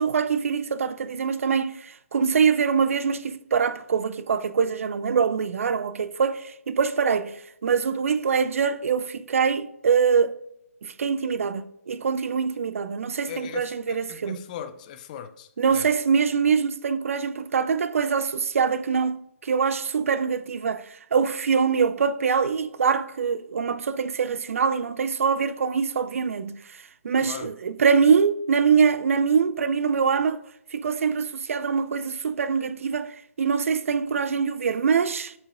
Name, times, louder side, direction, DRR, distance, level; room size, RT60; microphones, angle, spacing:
voice 1, 0.0-10.3 10.8-14.4 15.6-30.4 30.7-35.3, right 6 dB, 60° right, 0.5 m, -24 dB
voice 2, 13.3-15.9 27.2-27.5, left 9 dB, 30° left, 0.5 m, -39 dB
7.7 x 5.6 x 2.5 m
figure-of-eight pair, 140°, 8 cm